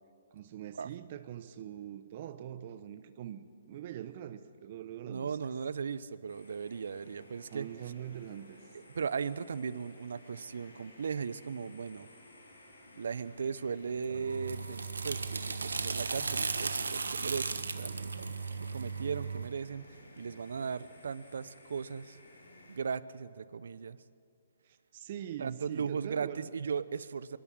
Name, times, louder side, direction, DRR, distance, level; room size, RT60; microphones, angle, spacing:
voice 1, 0.3-5.4 7.5-8.6 24.6-26.5, right 10 dB, 45° right, 11 dB, 0.9 m, -43 dB
voice 2, 5.1-7.7 8.9-12.1 13.0-22.2 22.7-24.0 25.4-27.4, right 6 dB, 70° right, 17 dB, 0.7 m, -37 dB
sound 1, 6.3-22.8, left 1 dB, 90° left, 6.0 m, -56 dB
sound 2, 14.0-19.5, right 4 dB, 85° right, 1.4 m, -36 dB
24.0 x 13.0 x 8.8 m, 2.4 s
hypercardioid pair, 140°, 0 cm